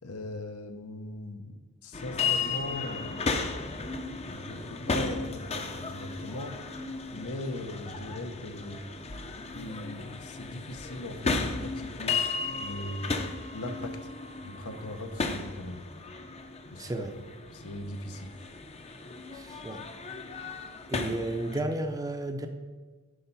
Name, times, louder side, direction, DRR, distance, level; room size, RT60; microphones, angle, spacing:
voice 1, 0.0-3.4 4.1-6.6 7.1-8.8 9.5-12.2 12.6-13.1 13.5-14.1 14.4-15.8 16.6-17.0 17.5-18.3, left 1 dB, 85° left, 6 dB, 1.0 m, -39 dB
sound 1, 1.9-21.6, left 4 dB, 30° left, 0.6 m, -35 dB
voice 2, 16.8-17.1 19.3-19.8 20.9-22.5, right 1 dB, 15° right, 5 dB, 0.6 m, -32 dB
10.5 x 4.5 x 5.6 m, 1.4 s
head